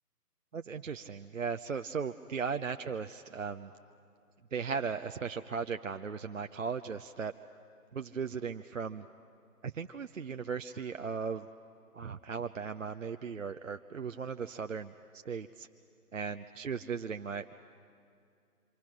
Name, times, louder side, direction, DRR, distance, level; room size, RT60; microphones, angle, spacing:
voice 1, 0.5-3.7 4.5-7.3 7.9-9.1 9.6-11.5 11.9-15.7 16.1-17.5, right 5 dB, 55° right, 7 dB, 0.6 m, -37 dB
26.0 x 25.5 x 5.9 m, 2.4 s
figure-of-eight pair, 155°, 47 cm